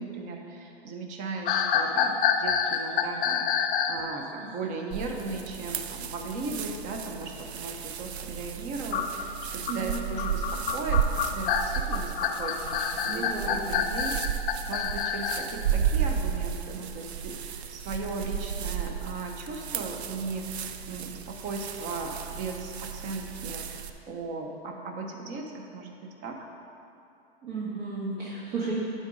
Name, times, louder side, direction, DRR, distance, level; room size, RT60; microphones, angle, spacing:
voice 1, 0.0-26.4, right 3 dB, 25° right, 2 dB, 0.7 m, -37 dB
sound 1, 1.5-4.1 8.9-15.5, left 7 dB, 55° left, 0.6 m, -27 dB
sound 2, 4.9-23.9, right 8 dB, 85° right, 0.6 m, -33 dB
voice 2, 9.7-10.0 13.1-13.6 27.4-28.7, right 4 dB, 50° right, -8 dB, 1.8 m, -33 dB
10.0 x 3.9 x 4.9 m, 2.7 s
hypercardioid pair, 140°, 32 cm